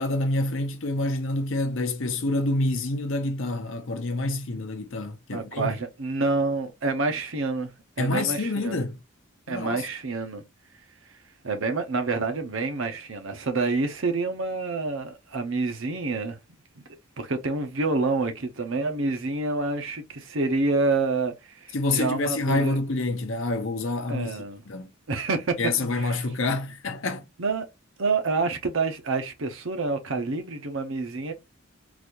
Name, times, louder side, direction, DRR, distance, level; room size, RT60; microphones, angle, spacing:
voice 1, 0.0-5.7 8.0-9.0 9.5-9.8 21.7-24.4 24.7-24.9 25.6-27.2, left 2 dB, 65° left, 0.7 m, -27 dB
voice 2, 5.3-7.7 8.0-8.8 9.5-10.4 11.4-16.4 16.8-16.9 17.2-22.8 24.1-24.6 25.1-25.6 25.9-26.2 27.4-27.6 28.0-31.3, right 3 dB, 65° right, 0.8 m, -28 dB
4.0 x 2.5 x 3.0 m
head